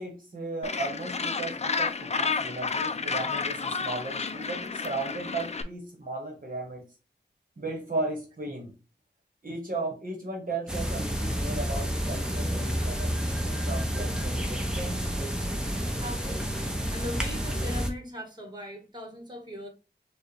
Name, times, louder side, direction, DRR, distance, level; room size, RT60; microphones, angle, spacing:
voice 1, 0.0-6.8 7.6-8.8 9.4-15.1, right 2 dB, 50° right, 1 dB, 1.1 m, -36 dB
Gull seagull, 0.6-5.6, left 5 dB, 40° left, 0.4 m, -31 dB
sound 1, 10.7-17.9, equal, 5° right, 0.8 m, -30 dB
voice 2, 16.0-19.7, left 1 dB, 25° right, 2 dB, 1.4 m, -39 dB
4.6 x 2.3 x 3.3 m, 0.31 s
wide cardioid pair, 85°, 18 cm